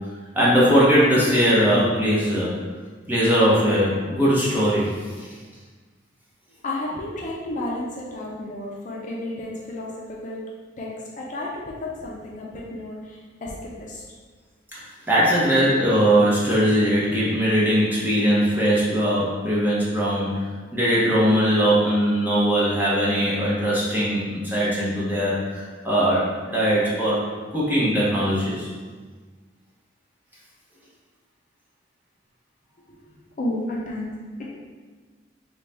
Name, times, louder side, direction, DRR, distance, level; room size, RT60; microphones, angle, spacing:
voice 1, 0.3-2.6 3.1-5.3 14.7-20.4 20.7-27.3 27.5-28.7, equal, 10° right, -8 dB, 0.8 m, -20 dB
voice 2, 6.6-10.4 10.8-10.9 11.2-14.0 33.4-34.1 34.4-34.5, left 1 dB, 40° left, -4 dB, 0.5 m, -32 dB
4.0 x 2.3 x 3.3 m, 1.4 s
head